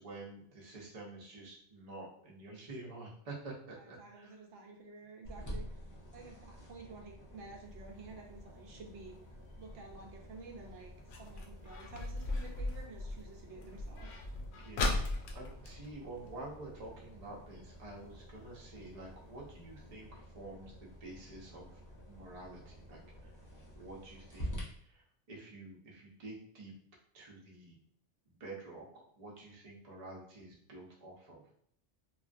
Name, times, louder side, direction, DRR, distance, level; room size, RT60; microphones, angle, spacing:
voice 1, 0.0-4.4 5.9-6.0 14.5-15.0 15.3-21.7 22.1-23.3 23.7-24.5 24.9-26.7 27.1-27.8 28.3-31.4, right 2 dB, 40° right, -2 dB, 0.7 m, -49 dB
voice 2, 3.8-5.7 6.1-9.1 9.6-10.9 11.2-14.1, right 3 dB, 80° right, 0 dB, 1.0 m, -51 dB
sound 1, 5.2-24.6, equal, 20° left, 0.6 m, -50 dB
sound 2, 7.6-16.9 17.2-17.3 17.6-17.9 18.5-18.6 19.1-19.2 19.5-19.6 19.9-20.0, left 2 dB, 70° left, 0.8 m, -39 dB
3.0 x 2.4 x 2.5 m, 0.67 s
omnidirectional pair, 1.2 m